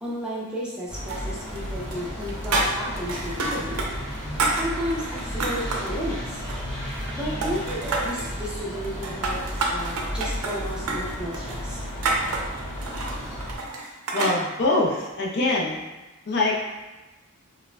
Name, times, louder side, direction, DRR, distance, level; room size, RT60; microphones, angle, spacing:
voice 1, 0.0-3.9 4.5-6.4 7.1-11.8, equal, 5° right, -7 dB, 0.5 m, -33 dB
sound 1, 0.9-13.6, equal, 10° left, 1.2 m, -33 dB
sound 2, 1.1-1.7 1.9-5.9 6.4-7.1 7.4-8.3 8.8-14.4, right 3 dB, 80° right, 0.5 m, -29 dB
voice 2, 14.1-15.8 16.3-16.7, left 2 dB, 50° left, -2 dB, 0.4 m, -24 dB
4.7 x 2.0 x 2.2 m, 1.1 s
head